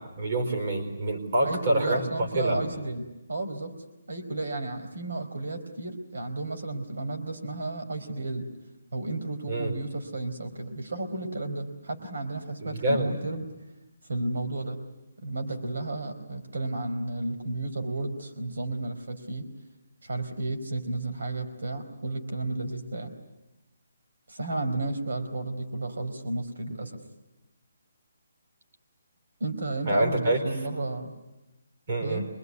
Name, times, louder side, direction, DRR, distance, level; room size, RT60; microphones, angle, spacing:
voice 1, 0.2-2.0 2.4-2.6 9.5-9.7 12.6-13.2 29.9-30.4 31.9-32.2, right 1 dB, 35° right, 3 dB, 4.4 m, -26 dB
voice 2, 1.4-3.7 4.1-8.5 8.9-13.4 14.1-14.8 15.2-19.5 20.0-23.1 24.3-27.0 29.4-31.1 32.0-32.3, right 2 dB, 75° right, 7 dB, 4.3 m, -32 dB
25.5 x 22.5 x 9.6 m, 1.0 s
hypercardioid pair, 180°, 0 cm